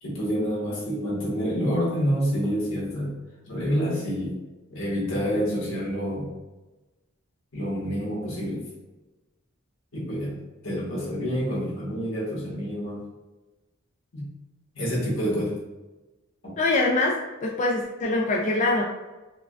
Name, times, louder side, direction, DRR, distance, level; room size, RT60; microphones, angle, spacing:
voice 1, 0.0-3.1 3.5-4.4 4.7-6.3 7.5-8.6 9.9-10.4 10.6-13.0 14.1-14.3 14.7-15.6 16.4-16.5, equal, 85° left, -5 dB, 1.4 m, -27 dB
voice 2, 16.6-18.8, left 2 dB, 35° left, -1 dB, 0.4 m, -24 dB
4.6 x 2.2 x 2.4 m, 1.1 s
head